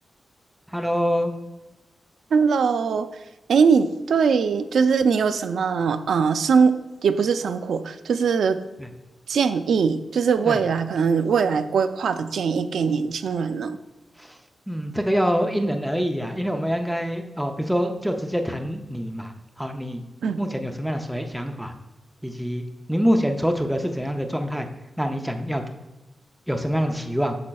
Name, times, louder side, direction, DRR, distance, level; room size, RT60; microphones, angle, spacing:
voice 1, 0.7-1.4 8.8-8.9 10.5-10.6 14.2-14.4 14.7-20.0 20.4-21.7 22.2-22.6 22.9-24.7 25.0-25.6 26.5-27.4, equal, ahead, 4 dB, 0.4 m, -25 dB
voice 2, 2.3-3.1 3.5-6.7 7.0-8.6 9.3-13.8 20.2-20.4, right 5 dB, 80° right, 9 dB, 0.4 m, -21 dB
8.5 x 6.3 x 2.3 m, 1.0 s
wide cardioid pair, 170°, 0 cm